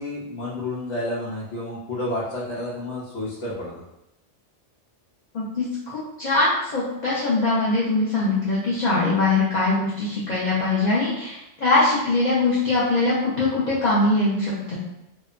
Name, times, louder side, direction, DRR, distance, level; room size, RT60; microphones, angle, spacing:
voice 1, 0.0-3.7, left 1 dB, 80° left, -7 dB, 1.0 m, -30 dB
voice 2, 5.3-14.8, left 2 dB, 50° left, -7 dB, 0.6 m, -22 dB
2.8 x 2.2 x 2.4 m, 0.88 s
omnidirectional pair, 1.2 m